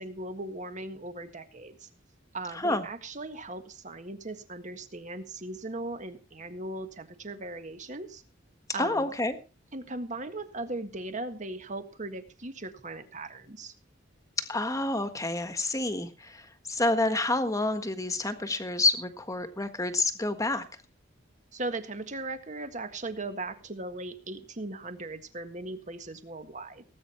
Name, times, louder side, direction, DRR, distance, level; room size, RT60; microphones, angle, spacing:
voice 1, 0.0-1.9 2.3-8.2 8.7-9.1 9.7-13.7 21.5-26.8, right 2 dB, 40° right, 8 dB, 1.7 m, -38 dB
voice 2, 8.8-9.4 14.4-20.6, left 2 dB, 15° left, 9 dB, 1.5 m, -28 dB
18.5 x 8.8 x 4.4 m, 0.33 s
head